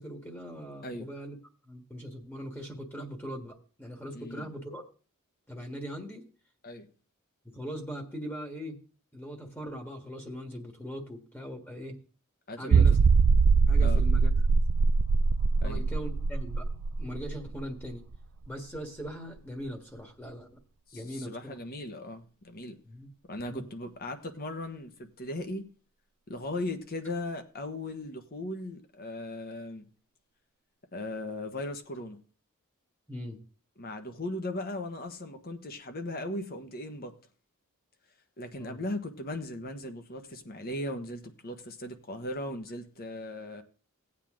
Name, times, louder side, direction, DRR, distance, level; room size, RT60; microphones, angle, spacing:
voice 1, 0.0-1.4 1.7-4.8 5.5-6.2 7.5-8.8 9.1-12.0 12.6-13.0 13.7-14.6 15.6-16.7 17.0-18.0 18.5-20.5 20.9-21.6 22.9-23.1 23.5-23.7 33.1-33.4 38.6-38.8, equal, 10° left, 1.6 m, -40 dB
voice 2, 4.1-4.5 6.6-6.9 12.5-12.9 13.8-14.0 15.6-15.8 20.9-22.8 23.3-25.7 26.3-29.9 30.9-32.2 33.8-37.2 38.4-43.6, left 1 dB, 45° left, 1.3 m, -38 dB
sound 1, 12.7-18.2 18.5-18.6 19.1-19.2, right 4 dB, 80° right, 0.5 m, -23 dB
16.5 x 8.4 x 3.7 m
head